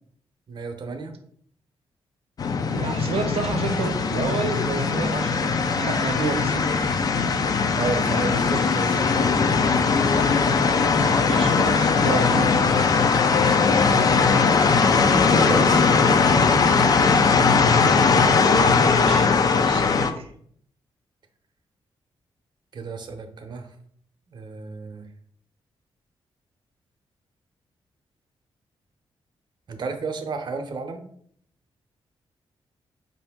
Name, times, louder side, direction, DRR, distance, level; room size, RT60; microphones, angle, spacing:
voice 1, 0.5-1.1 7.7-9.4 14.9-17.2 22.7-23.8 24.3-25.1 29.7-31.0, right 4 dB, 50° right, 5 dB, 0.7 m, -32 dB
sound 1, 2.4-20.1, left 5 dB, 40° left, 0.4 m, -20 dB
voice 2, 2.7-6.6 11.2-12.7 18.4-20.3, right 5 dB, 85° right, 6 dB, 0.7 m, -30 dB
sound 2, 3.8-5.7 6.0-6.1 7.9-17.0, left 2 dB, 80° left, 1.1 m, -43 dB
5.0 x 2.7 x 3.5 m, 0.63 s
wide cardioid pair, 120°, 10 cm